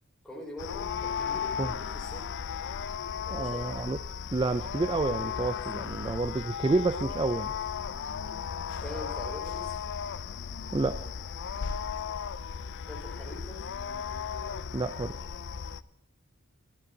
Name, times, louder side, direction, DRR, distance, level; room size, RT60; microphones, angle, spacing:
voice 1, 0.2-2.3 3.3-3.7 8.8-9.7 12.9-13.6, left 1 dB, 5° left, -1 dB, 4.6 m, -43 dB
sound 1, 0.6-15.8, left 7 dB, 55° left, 0.5 m, -35 dB
voice 2, 3.3-4.0 4.3-7.5 10.7-11.1 14.7-15.2, right 3 dB, 20° right, 11 dB, 0.4 m, -29 dB
24.0 x 12.0 x 2.8 m, 0.77 s
head